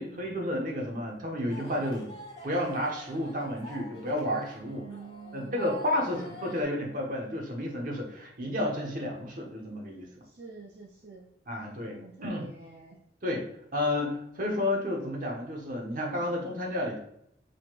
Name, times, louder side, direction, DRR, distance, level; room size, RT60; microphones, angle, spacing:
voice 1, 0.0-2.1 2.4-4.9 5.3-10.1 11.5-12.0 12.2-12.5 13.2-17.0, left 1 dB, 50° right, 0 dB, 1.1 m, -31 dB
sound 1, 1.5-6.6, equal, 25° left, 1.3 m, -46 dB
voice 2, 4.8-5.8 6.1-6.3 10.2-11.2 11.6-13.0, right 3 dB, 70° right, 0 dB, 0.6 m, -47 dB
4.7 x 4.1 x 2.4 m, 0.75 s
head